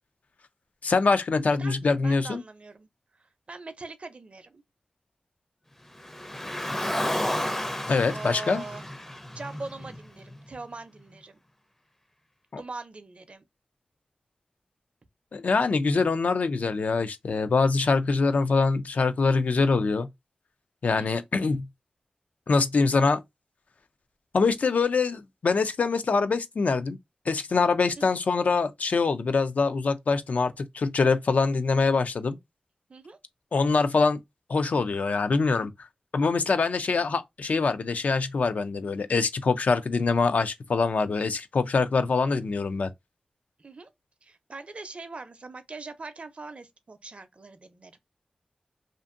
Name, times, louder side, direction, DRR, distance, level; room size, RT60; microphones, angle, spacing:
voice 1, 0.8-2.4 7.9-8.6 12.5-12.6 15.3-20.1 20.8-21.7 22.5-23.2 24.3-27.0 27.3-32.4 33.5-34.2 34.5-35.7 36.1-42.9, left 4 dB, 70° left, 0.3 m, -24 dB
voice 2, 1.4-2.9 3.5-4.6 8.1-8.9 9.3-11.4 12.6-13.4 21.0-21.2 28.0-28.2 32.9-33.2 43.6-43.9 44.2-47.9, right 3 dB, 50° right, 0.5 m, -42 dB
Car, 6.0-10.4, left 1 dB, 15° left, 0.5 m, -32 dB
2.5 x 2.5 x 2.5 m
wide cardioid pair, 70°, 3 cm